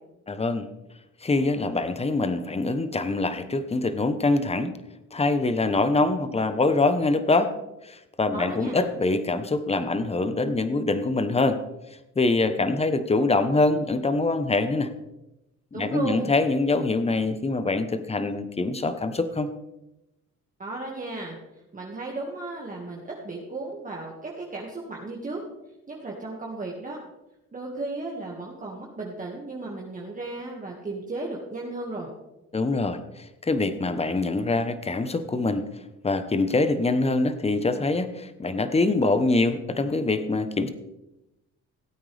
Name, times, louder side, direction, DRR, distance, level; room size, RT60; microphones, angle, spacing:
voice 1, 0.3-0.7 1.2-4.7 5.1-7.5 7.8-11.6 12.2-14.9 15.7-19.5 32.5-35.6 36.0-40.7, left 3 dB, 20° left, 10 dB, 1.0 m, -24 dB
voice 2, 8.3-8.9 15.7-16.3 20.6-21.4 21.7-25.4 25.9-27.0 27.5-32.1, right 2 dB, 25° right, -2 dB, 2.0 m, -35 dB
17.0 x 8.8 x 3.5 m, 0.95 s
cardioid pair, 90°, 30 cm